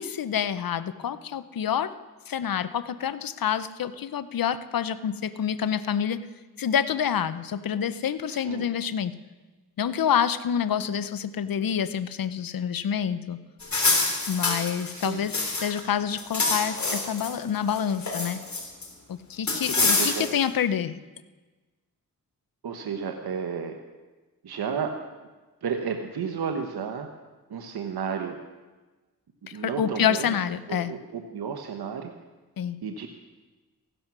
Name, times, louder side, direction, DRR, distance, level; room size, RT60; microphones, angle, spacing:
voice 1, 0.0-2.0 2.3-6.2 6.6-9.1 9.8-13.4 14.3-18.4 19.1-21.0 29.6-30.9 32.6-32.8, left 8 dB, 65° left, 14 dB, 0.8 m, -27 dB
voice 2, 8.3-8.7 14.9-15.3 19.8-20.3 22.6-23.8 24.4-24.9 25.6-27.1 27.5-28.4 29.5-30.4 30.7-32.1 32.8-33.1, right 6 dB, 75° right, 4 dB, 1.2 m, -32 dB
sound 1, 13.6-15.8 16.1-17.3 17.7-18.9 19.5-20.4, left 3 dB, 45° left, 3.5 m, -26 dB
15.0 x 12.0 x 6.1 m, 1.2 s
cardioid pair, 55°, 38 cm